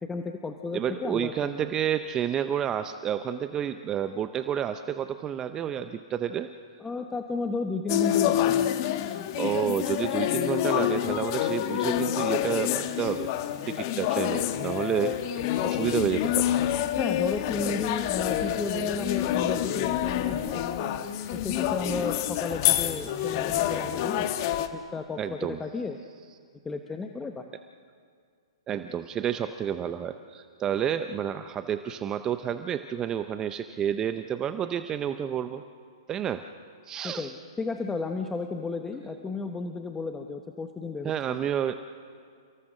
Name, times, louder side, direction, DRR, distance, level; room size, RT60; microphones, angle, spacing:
voice 1, 0.0-1.7 6.8-8.5 17.0-20.6 21.3-24.3 24.6-26.0 26.6-27.4 37.0-41.4, left 3 dB, 10° left, 5 dB, 1.1 m, -33 dB
voice 2, 0.7-6.5 9.1-13.3 13.7-16.5 25.2-25.6 28.7-35.6 36.1-36.5 36.8-37.3 41.0-41.7, right 9 dB, 20° right, 10 dB, 0.7 m, -30 dB
sound 1, 7.9-24.7, left 12 dB, 40° left, 1.3 m, -27 dB
29.5 x 17.5 x 6.5 m, 2.2 s
hypercardioid pair, 125°, 3 cm